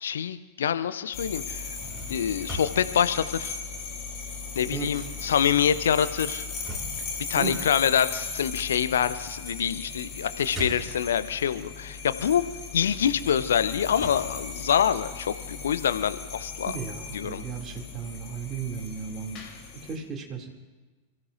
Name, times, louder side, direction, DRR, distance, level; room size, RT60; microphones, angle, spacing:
voice 1, 0.0-1.7 2.1-3.6 4.6-6.4 7.3-12.4 12.7-16.7 17.1-17.4, left 8 dB, 65° left, 13 dB, 0.6 m, -26 dB
sound 1, 1.1-20.0, left 4 dB, 35° left, 3.4 m, -38 dB
sound 2, 1.6-4.3 4.6-11.4 11.9-15.4, equal, ahead, 5.3 m, -43 dB
voice 2, 4.7-5.1 7.4-7.5 16.6-19.4 19.8-20.5, right 6 dB, 25° right, 0 dB, 2.6 m, -35 dB
28.5 x 15.0 x 2.6 m, 1.3 s
figure-of-eight pair, 90°, 0 cm